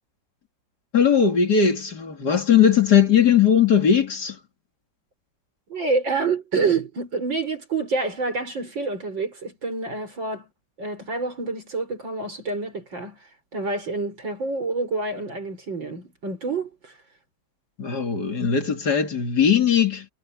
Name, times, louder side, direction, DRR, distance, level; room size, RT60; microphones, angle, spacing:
voice 1, 0.9-4.4 17.8-20.1, left 7 dB, 55° left, 3.1 m, -19 dB
voice 2, 5.7-10.5 10.8-17.0, right 4 dB, 70° right, 6.6 m, -27 dB
omnidirectional pair, 2.1 m